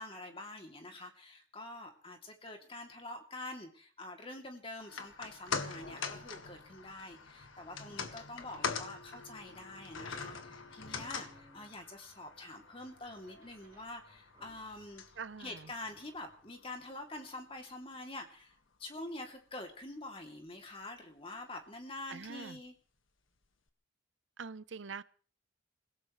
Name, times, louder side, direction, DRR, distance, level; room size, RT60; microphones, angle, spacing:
voice 1, 0.0-15.0 15.4-18.5 18.8-22.7, left 2 dB, 30° left, 3 dB, 2.8 m, -46 dB
sound 1, 4.8-17.2 17.5-17.6, left 5 dB, 90° left, 1.7 m, -44 dB
sound 2, 6.5-16.4, equal, 20° right, 7.5 m, -66 dB
voice 2, 15.2-15.7 22.1-22.6 24.4-25.0, right 5 dB, 70° right, 16 dB, 0.7 m, -44 dB
26.0 x 17.5 x 3.2 m, 0.42 s
head